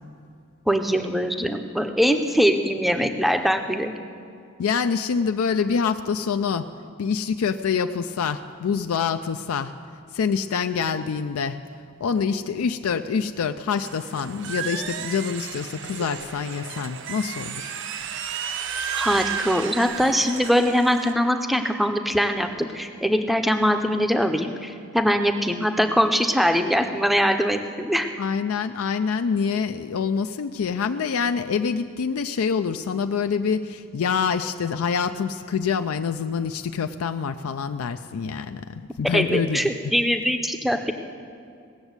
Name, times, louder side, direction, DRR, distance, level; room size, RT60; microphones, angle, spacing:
voice 1, 0.7-3.9 18.9-28.1 39.1-40.9, equal, ahead, 6 dB, 0.5 m, -22 dB
voice 2, 4.6-6.7 7.0-9.7 10.1-11.6 12.0-17.8 28.2-39.7, left 6 dB, 80° left, 8 dB, 0.4 m, -26 dB
sound 1, 13.8-21.1, right 7 dB, 55° right, 0.6 m, -33 dB
17.5 x 7.1 x 8.0 m, 2.4 s
head